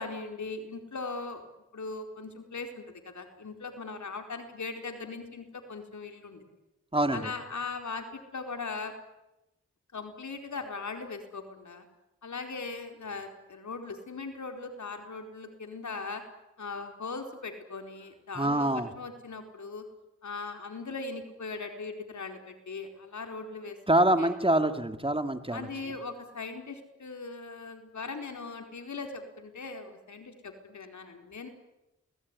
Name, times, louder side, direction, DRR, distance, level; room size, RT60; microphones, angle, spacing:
voice 1, 0.0-1.4 1.7-6.4 7.1-8.9 9.9-11.8 12.2-16.2 16.6-19.9 20.2-23.8 24.2-24.3 25.5-31.5, left 4 dB, 75° left, 5 dB, 4.5 m, -39 dB
voice 2, 6.9-7.3 18.3-18.9 23.9-25.7, right 1 dB, 20° right, 8 dB, 2.8 m, -25 dB
28.0 x 20.0 x 10.0 m, 0.94 s
cardioid pair, 50°, 29 cm